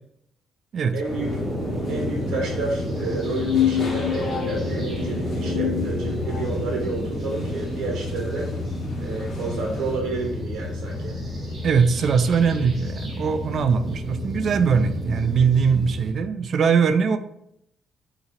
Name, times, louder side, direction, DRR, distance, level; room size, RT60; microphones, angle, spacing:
voice 1, 0.9-1.3 1.9-8.5 9.0-11.2, right 3 dB, 80° right, -1 dB, 0.9 m, -30 dB
sound 1, 1.0-10.0, left 1 dB, 45° left, 1.3 m, -40 dB
sound 2, 1.1-16.1, left 1 dB, 30° right, 1.7 m, -30 dB
sound 3, 3.2-6.7, left 10 dB, 85° left, 0.4 m, -27 dB
voice 2, 11.6-17.2, right 6 dB, 55° right, 10 dB, 0.4 m, -21 dB
3.9 x 2.9 x 4.3 m, 0.76 s
cardioid pair, 90°, 0 cm